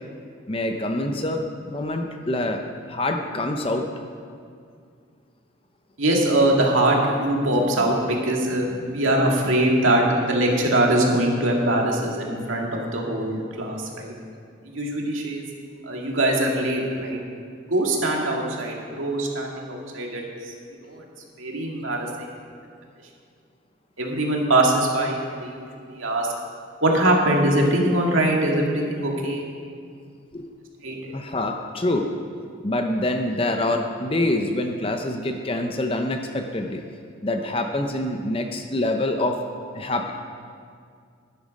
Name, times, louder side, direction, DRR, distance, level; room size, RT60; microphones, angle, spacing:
voice 1, 0.5-2.6 2.9-3.9 30.3-30.5 31.1-32.1 32.6-36.8 37.2-39.4 39.7-40.1, left 1 dB, 25° left, 5 dB, 0.7 m, -25 dB
voice 2, 6.0-14.1 14.6-15.4 15.9-17.2 17.7-20.2 20.8-21.0 21.4-22.3 24.0-26.3 26.8-29.4 30.8-31.1, right 1 dB, 85° right, -1 dB, 2.2 m, -22 dB
11.5 x 11.0 x 5.3 m, 2.2 s
head